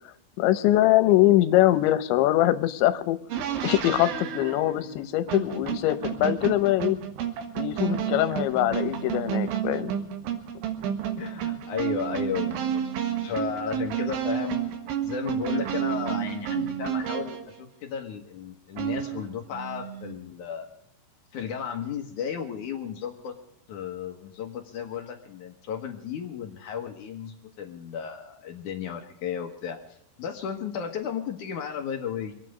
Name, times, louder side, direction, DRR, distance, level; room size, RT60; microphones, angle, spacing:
voice 1, 0.4-3.2 3.6-7.0 7.6-9.9, left 15 dB, 80° left, 12 dB, 3.2 m, -22 dB
sound 1, 3.3-17.5 18.8-19.4, right 9 dB, 85° right, 3.9 m, -31 dB
sound 2, 8.5-9.8 12.0-13.4 15.5-17.0 19.5-20.1, right 9 dB, 45° right, 4.4 m, -40 dB
voice 2, 11.2-12.8 13.2-14.6 15.0-20.7 21.3-23.3 23.7-32.3, left 7 dB, 65° left, 4 dB, 2.0 m, -34 dB
25.5 x 9.2 x 5.0 m, 0.75 s
omnidirectional pair, 5.2 m